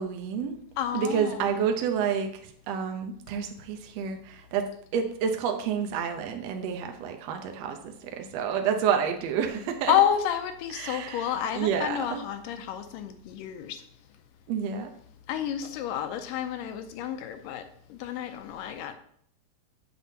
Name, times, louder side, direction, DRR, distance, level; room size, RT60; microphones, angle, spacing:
voice 1, 0.0-0.6 0.9-4.7 4.9-9.9 10.7-11.2 11.5-12.2 14.5-14.9, right 7 dB, 80° right, 4 dB, 1.5 m, -29 dB
voice 2, 0.8-1.4 9.9-13.8 15.3-19.0, left 10 dB, 80° left, 8 dB, 2.2 m, -30 dB
7.9 x 7.3 x 2.8 m, 0.64 s
omnidirectional pair, 3.9 m